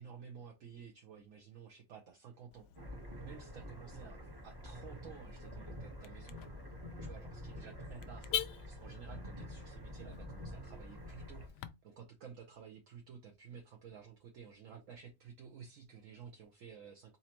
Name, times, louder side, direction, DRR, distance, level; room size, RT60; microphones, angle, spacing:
voice 1, 0.0-2.7 3.2-6.7 7.0-17.2, right 7 dB, 60° right, 0.9 m, -53 dB
Car / Alarm, 2.5-11.7, left 10 dB, 75° left, 1.1 m, -47 dB
sound 1, 2.7-11.5, equal, 20° right, 0.7 m, -47 dB
4.2 x 3.9 x 2.9 m
omnidirectional pair, 1.9 m